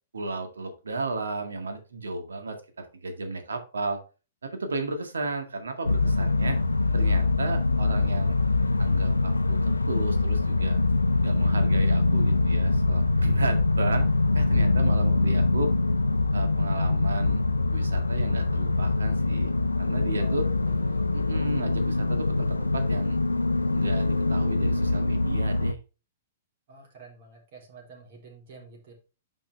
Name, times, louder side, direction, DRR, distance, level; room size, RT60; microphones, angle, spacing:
voice 1, 0.1-4.0 4.4-6.6 6.9-8.4 8.8-10.8 11.2-15.7 16.3-17.4 17.7-20.5 21.1-23.2 23.7-25.8, right 3 dB, 70° right, 5 dB, 1.8 m, -34 dB
sound 1, 5.8-25.7, left 3 dB, 80° left, 0.5 m, -24 dB
voice 2, 20.6-21.2 26.7-28.9, right 4 dB, 50° right, 0 dB, 3.5 m, -49 dB
8.7 x 5.4 x 3.3 m, 0.32 s
figure-of-eight pair, 105°, 0 cm